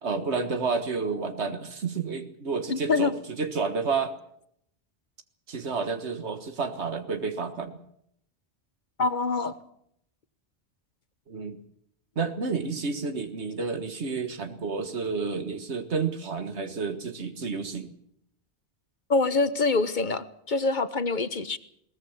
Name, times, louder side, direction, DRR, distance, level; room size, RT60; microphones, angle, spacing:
voice 1, 0.0-3.1 3.4-4.1 5.5-7.8 11.3-11.6 12.2-17.9, right 4 dB, 85° right, 8 dB, 1.8 m, -30 dB
voice 2, 2.7-3.1 9.0-9.5 19.1-21.6, left 3 dB, 45° left, 12 dB, 1.3 m, -25 dB
21.0 x 19.0 x 7.2 m, 0.74 s
omnidirectional pair, 1.1 m